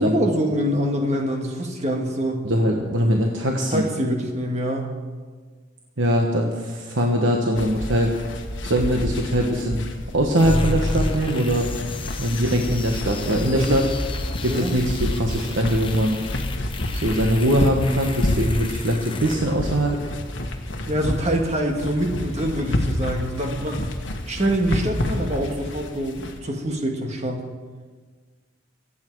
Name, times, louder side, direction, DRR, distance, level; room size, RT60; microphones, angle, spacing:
voice 1, 0.0-2.5 3.7-4.9 13.5-13.9 14.5-14.7 20.9-23.9 24.3-27.5, equal, 35° right, 2 dB, 1.7 m, -25 dB
voice 2, 2.4-3.8 6.0-8.1 8.6-9.8 10.1-11.7 12.2-13.8 14.4-16.2 16.9-20.0, equal, 70° right, 1 dB, 1.3 m, -22 dB
sound 1, 7.6-26.4, left 1 dB, 65° left, 1.5 m, -29 dB
sound 2, 10.4-20.3, left 2 dB, 25° left, 0.8 m, -31 dB
24.5 x 8.6 x 4.7 m, 1.5 s
head